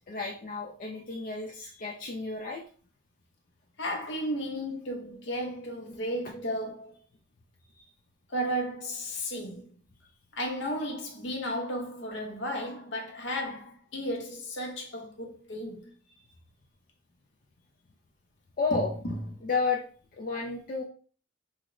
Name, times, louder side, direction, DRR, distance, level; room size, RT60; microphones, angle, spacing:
voice 1, 0.1-2.6 7.8-7.9 18.6-18.9 19.4-19.8 20.1-20.8, left 4 dB, 45° left, 0.4 m, -31 dB
voice 2, 3.8-6.9 8.3-9.7 10.3-15.9 19.0-19.1, equal, 65° left, 0.8 m, -34 dB
3.7 x 2.1 x 3.0 m
head